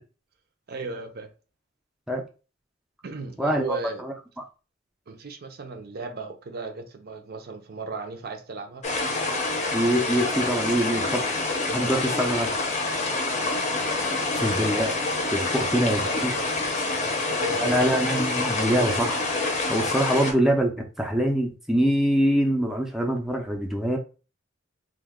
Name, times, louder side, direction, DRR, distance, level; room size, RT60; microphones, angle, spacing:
voice 1, 0.7-1.3 3.0-4.0 5.1-8.9 13.3-13.7 15.4-16.6 17.0-17.9, right 3 dB, 50° right, 0.5 m, -36 dB
voice 2, 3.4-4.1 9.7-11.2 11.7-12.5 14.3-15.0 15.3-16.3 17.6-19.3 19.7-24.0, equal, ahead, 0.5 m, -24 dB
sound 1, 8.8-20.3, left 2 dB, 35° left, 0.6 m, -27 dB
3.0 x 2.2 x 3.5 m
head